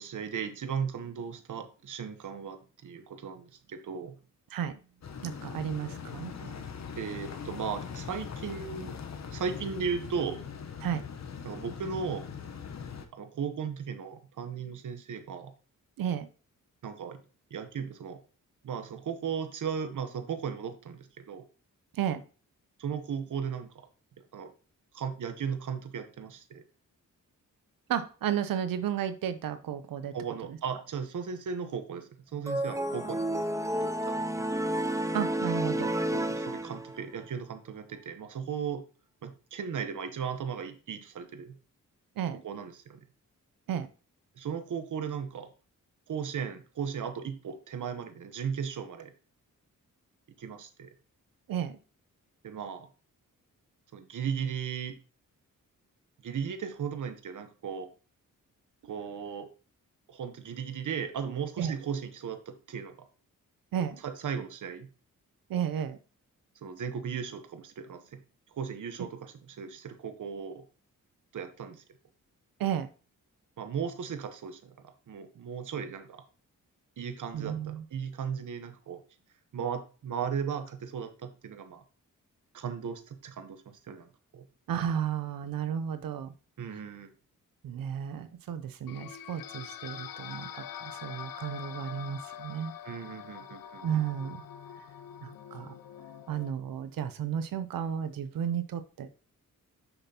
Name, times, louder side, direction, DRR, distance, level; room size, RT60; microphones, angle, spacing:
voice 1, 0.0-4.1 6.4-9.0 9.3-10.4 11.4-12.3 13.1-15.5 16.8-17.2 17.5-18.2 18.6-21.4 22.8-23.9 24.3-24.5 24.9-26.6 30.1-33.5 33.7-34.2 36.1-38.8 39.2-41.5 42.3-43.1 44.4-45.5 46.1-49.1 50.4-50.9 52.4-52.9 53.9-55.0 56.2-57.9 58.8-59.5 60.1-63.1 64.0-64.9 66.6-68.2 68.5-70.6 71.3-71.8 73.6-76.2 77.0-79.0 79.5-81.8 82.5-84.5 86.6-87.1 92.8-94.0, right 7 dB, 65° right, 8 dB, 0.9 m, -36 dB
sound 1, 5.0-13.0, left 6 dB, 55° left, 0.9 m, -41 dB
voice 2, 5.2-6.3 10.8-11.0 16.0-16.3 21.9-22.2 27.9-30.1 35.1-35.9 42.2-42.4 43.7-43.9 51.5-51.8 61.6-61.7 63.7-64.0 65.5-66.0 72.6-72.9 77.3-77.8 84.7-86.3 87.6-92.7 93.8-94.4 95.2-95.7 96.3-99.2, right 9 dB, 85° right, 12 dB, 0.6 m, -33 dB
sound 2, 32.5-37.1, right 1 dB, 10° right, 0.5 m, -31 dB
sound 3, 88.9-96.5, left 9 dB, 80° left, 0.6 m, -44 dB
6.8 x 5.8 x 2.8 m, 0.36 s
cardioid pair, 80°, 34 cm